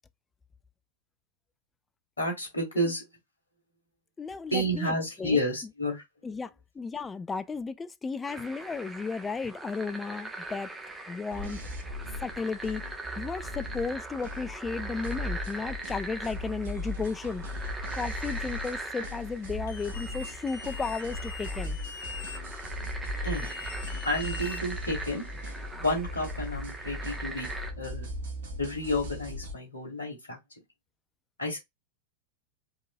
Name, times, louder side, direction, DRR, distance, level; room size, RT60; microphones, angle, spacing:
voice 1, 2.2-3.0 4.5-6.0 23.2-23.5 24.0-25.3 25.7-27.5 27.8-28.1 28.6-30.4 31.4-31.6, equal, 75° left, 2.1 m, -30 dB
voice 2, 4.2-5.4 6.2-10.7 11.1-11.6 12.2-12.8 13.2-17.4 17.9-21.8, left 4 dB, 15° left, 0.4 m, -34 dB
sound 1, 8.3-27.7, right 2 dB, 10° right, 1.0 m, -41 dB
sound 2, 11.3-29.5, left 1 dB, 60° right, 1.4 m, -38 dB
sound 3, 19.7-22.4 23.2-25.0, left 6 dB, 60° left, 0.8 m, -43 dB
4.7 x 3.1 x 2.3 m
figure-of-eight pair, 90°, 0 cm